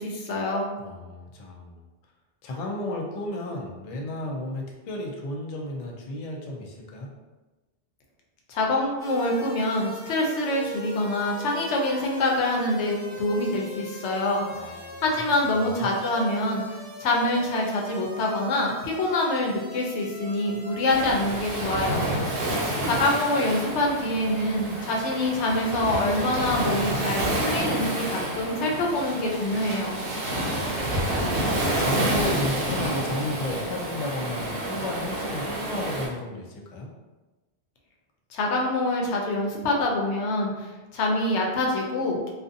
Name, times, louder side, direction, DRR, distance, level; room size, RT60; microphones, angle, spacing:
voice 1, 0.0-0.7 8.5-14.4 15.0-16.6 17.0-22.1 22.8-30.0 38.3-42.3, left 1 dB, 90° left, -1 dB, 0.9 m, -25 dB
voice 2, 0.8-1.8 2.4-7.1 14.5-15.9 22.4-23.1 30.5-36.9, left 1 dB, 60° left, 0 dB, 0.4 m, -34 dB
sound 1, 9.0-23.7, equal, 15° right, 0.4 m, -41 dB
Waves surf, 20.9-36.1, right 1 dB, 60° right, 0.9 m, -29 dB
2.5 x 2.4 x 2.5 m, 1.2 s
omnidirectional pair, 1.1 m